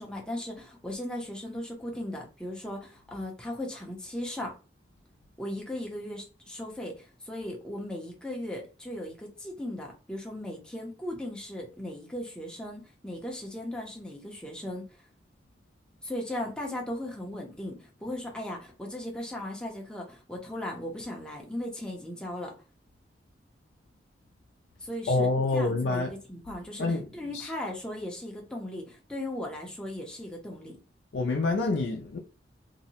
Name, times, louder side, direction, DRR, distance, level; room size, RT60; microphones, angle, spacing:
voice 1, 0.0-4.5 5.4-14.9 16.0-22.5 24.8-30.8, left 1 dB, 5° left, 0.6 m, -37 dB
voice 2, 25.1-26.1 26.8-27.1 27.3-27.5 31.1-32.2, left 3 dB, 85° left, 0.4 m, -27 dB
2.7 x 2.1 x 2.8 m
head